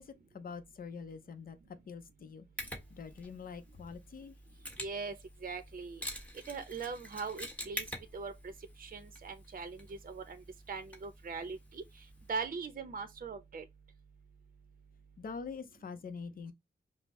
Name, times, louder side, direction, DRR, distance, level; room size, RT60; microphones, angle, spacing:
voice 1, 0.0-1.6 1.9-2.5 2.9-4.3 15.2-16.5, left 5 dB, 50° left, 0.5 m, -45 dB
Mechanisms, 2.6-12.5, equal, 5° left, 1.3 m, -47 dB
voice 2, 4.8-5.2 5.4-6.0 6.5-7.8 8.1-8.5 8.8-11.8 12.3-13.6, right 4 dB, 50° right, 0.6 m, -40 dB
5.1 x 2.0 x 3.0 m
wide cardioid pair, 105°, 19 cm